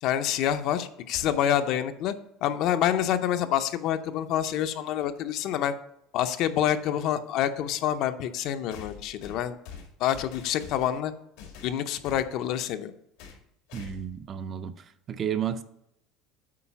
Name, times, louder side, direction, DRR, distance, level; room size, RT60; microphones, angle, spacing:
voice 1, 0.0-2.1 2.4-5.7 6.1-9.6 10.0-11.1 11.6-12.9, left 10 dB, 50° left, 0.6 m, -27 dB
sound 1, 1.1-1.7 3.8-3.9 5.0-5.1 8.7-11.0 11.4-12.3 13.2-13.4 13.7-14.2, left 6 dB, 90° left, 2.0 m, -45 dB
voice 2, 13.7-14.8 15.1-15.6, right 9 dB, 30° right, 0.4 m, -31 dB
8.4 x 4.8 x 5.7 m
cardioid pair, 170°, 0 cm